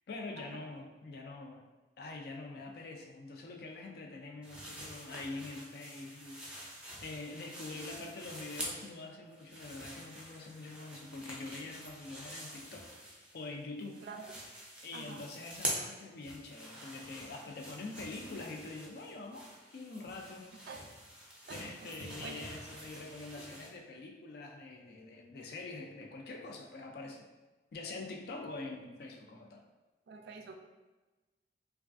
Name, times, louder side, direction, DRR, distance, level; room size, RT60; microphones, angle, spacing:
voice 1, 0.1-1.6 2.0-6.6 7.0-12.9 13.3-14.0 14.8-19.5 19.7-20.5 21.5-27.3 27.7-29.6, left 3 dB, 60° left, 1 dB, 0.4 m, -45 dB
sound 1, 4.4-9.0 9.3-13.5 13.8-23.7, equal, 5° right, 0.5 m, -46 dB
voice 2, 14.0-14.4 14.9-15.2 20.7-20.8 21.5-21.6 22.0-22.4 30.1-30.6, right 4 dB, 65° right, 4 dB, 0.3 m, -47 dB
3.2 x 2.3 x 2.5 m, 1.2 s
head